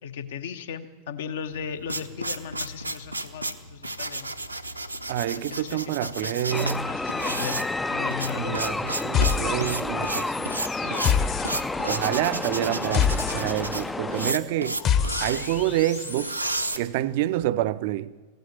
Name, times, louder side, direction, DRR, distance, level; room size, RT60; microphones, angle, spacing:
voice 1, 0.0-4.3 5.3-7.6 7.9-8.5, left 7 dB, 60° left, 1.0 m, -37 dB
sound 1, 1.5-17.4, right 2 dB, 85° right, 0.7 m, -33 dB
voice 2, 5.1-6.9 8.3-11.1 11.8-14.8 15.2-16.4 16.7-18.1, right 13 dB, 50° right, 0.5 m, -28 dB
sound 2, 6.5-14.3, left 2 dB, 10° left, 0.4 m, -30 dB
sound 3, 9.1-10.1 10.3-16.3, left 8 dB, 35° left, 1.0 m, -28 dB
15.5 x 9.1 x 9.5 m
figure-of-eight pair, 90°, 0 cm